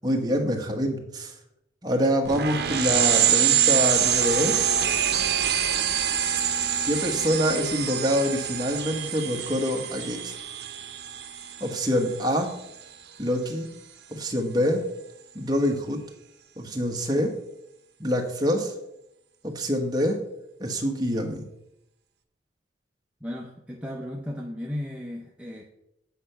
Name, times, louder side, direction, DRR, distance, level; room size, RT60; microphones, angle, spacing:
voice 1, 0.0-1.3 1.8-4.8 6.8-10.4 11.6-12.5 13.2-13.7 14.1-14.8 15.3-16.0 16.6-17.3 18.0-18.7 19.4-20.2 20.6-21.5, equal, 20° right, 2 dB, 1.2 m, -26 dB
sound 1, 2.3-12.4, right 9 dB, 65° right, 0.8 m, -25 dB
voice 2, 23.2-25.6, left 1 dB, 5° right, -1 dB, 0.6 m, -35 dB
8.5 x 5.8 x 5.6 m, 0.85 s
head